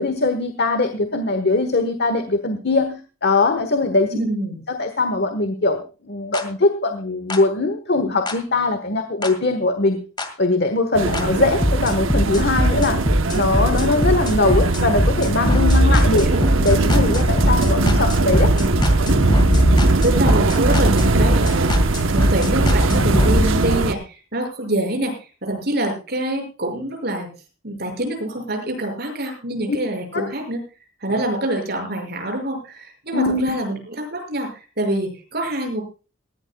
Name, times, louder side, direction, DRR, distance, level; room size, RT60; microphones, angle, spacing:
voice 1, 0.0-4.1 4.7-10.0 10.4-13.0 13.3-16.3 16.6-18.5 29.7-29.8 30.1-30.2 33.1-33.5, left 3 dB, 55° left, 8 dB, 1.3 m, -21 dB
voice 2, 4.1-4.6 16.1-16.5 20.0-25.1 25.4-27.3 27.6-30.6 31.0-35.8, right 1 dB, 50° right, 4 dB, 6.1 m, -25 dB
sound 1, 6.3-6.4 7.3-7.4 8.3-8.4 9.2-9.3 10.2-10.3 11.1-11.2 11.6-23.4, equal, 20° left, 2.1 m, -20 dB
sound 2, 10.9-23.9, right 2 dB, 75° right, 1.0 m, -20 dB
20.0 x 15.5 x 2.3 m, 0.33 s
head